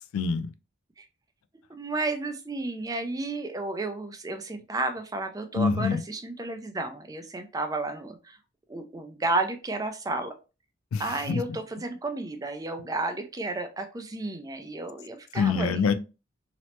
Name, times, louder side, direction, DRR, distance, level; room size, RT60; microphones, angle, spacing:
voice 1, 0.1-0.5 5.5-6.0 10.9-11.4 15.3-15.9, left 5 dB, 90° left, 0.3 m, -25 dB
voice 2, 1.7-8.4 8.7-10.3 11.0-15.8, right 2 dB, 15° right, 0.4 m, -32 dB
2.9 x 2.0 x 3.0 m
head